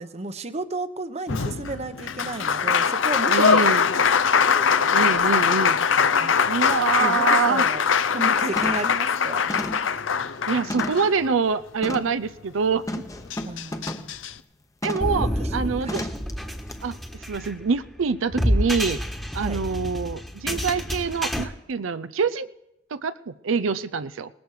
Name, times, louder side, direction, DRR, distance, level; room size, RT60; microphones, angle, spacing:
voice 1, 0.0-3.7 4.4-5.4 6.2-6.4 7.0-9.5 13.5-14.1 15.2-15.3 15.8-16.1 19.4-19.6, right 2 dB, 35° right, 11 dB, 0.8 m, -33 dB
Applause, 1.3-11.5 12.9-13.0 13.3-14.3, left 6 dB, 75° left, 0.7 m, -22 dB
voice 2, 3.3-3.9 4.9-5.8 6.5-7.7 10.5-12.8 14.8-16.1 16.8-17.0 17.3-19.0 19.3-22.5 22.9-24.3, right 5 dB, 85° right, 13 dB, 0.5 m, -25 dB
sound 1, 6.7-6.8 7.3-7.5 7.9-8.2 8.6-9.0 9.5-11.2 11.8-12.2 12.9-14.1 14.8-15.2 15.9-16.3 16.7-16.8, left 1 dB, 15° left, 0.9 m, -34 dB
sound 2, 15.0-21.4, equal, ahead, 1.3 m, -28 dB
19.0 x 15.0 x 4.9 m, 0.87 s
head